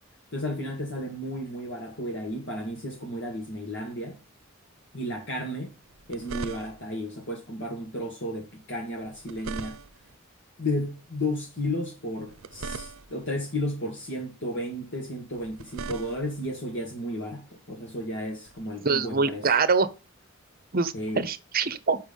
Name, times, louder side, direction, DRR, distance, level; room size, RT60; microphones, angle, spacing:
voice 1, 0.3-4.2 4.9-5.7 6.1-9.8 10.6-19.5 20.9-21.2, left 1 dB, 60° left, 2.0 m, -33 dB
sound 1, 5.8-7.0 9.0-10.2 12.1-13.3 15.3-16.5 18.5-18.6, right 4 dB, 80° right, 0.6 m, -40 dB
voice 2, 18.8-19.9 20.7-22.0, right 4 dB, 45° right, 0.9 m, -24 dB
7.0 x 5.8 x 5.5 m
head